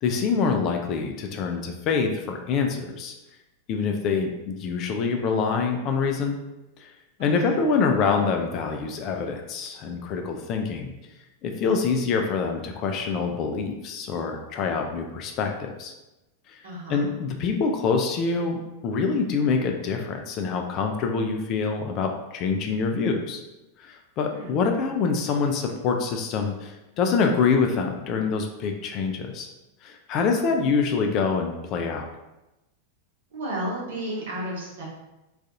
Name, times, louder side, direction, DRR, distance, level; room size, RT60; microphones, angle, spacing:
voice 1, 0.0-3.1 3.7-6.4 6.8-6.9 7.2-10.9 11.4-15.9 16.5-16.6 16.9-23.4 23.8-29.5 29.8-32.1, left 5 dB, 35° left, 3 dB, 0.3 m, -25 dB
voice 2, 7.2-7.6 16.6-17.1 24.3-24.6 33.3-34.8, right 1 dB, 60° right, -5 dB, 0.9 m, -33 dB
2.4 x 2.3 x 2.7 m, 0.98 s
figure-of-eight pair, 90°, 0 cm